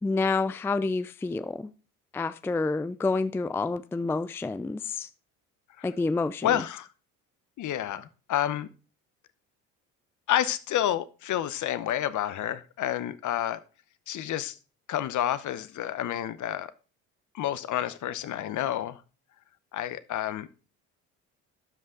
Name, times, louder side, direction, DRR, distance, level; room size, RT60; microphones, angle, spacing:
voice 1, 0.0-1.7 2.1-5.1 5.8-6.6, left 3 dB, 5° left, 0.4 m, -28 dB
voice 2, 6.4-6.9 7.6-8.7 10.3-13.6 14.1-14.6 14.9-16.7 17.3-19.0 19.7-20.7, left 11 dB, 55° left, 0.8 m, -29 dB
12.0 x 5.4 x 3.8 m
supercardioid pair, 70°, 37 cm